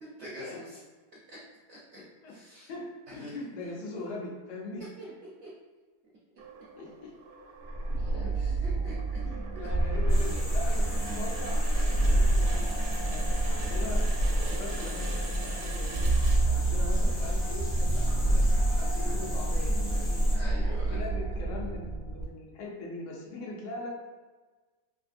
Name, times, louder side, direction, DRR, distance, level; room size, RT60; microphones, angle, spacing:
voice 1, 0.0-0.8 1.3-1.4 1.7-2.0 2.3-2.7 3.1-3.3 5.4-5.5 8.0-9.2 9.5-9.7 10.2-10.4 11.7-11.9 17.4-17.5 20.3-21.0, equal, 65° right, -6 dB, 0.7 m, -45 dB
voice 2, 2.7-5.1 6.8-7.1 7.9-8.2 9.2-16.0 16.4-20.2 20.9-23.9, left 2 dB, 80° left, -2 dB, 1.3 m, -41 dB
sound 1, 6.4-16.9, right 4 dB, 90° right, 1.2 m, -46 dB
sound 2, 7.7-22.2, right 1 dB, 50° left, 0.9 m, -27 dB
sound 3, 10.1-20.4, left 1 dB, 35° left, 0.5 m, -42 dB
3.2 x 2.6 x 2.5 m, 1.3 s
omnidirectional pair, 1.8 m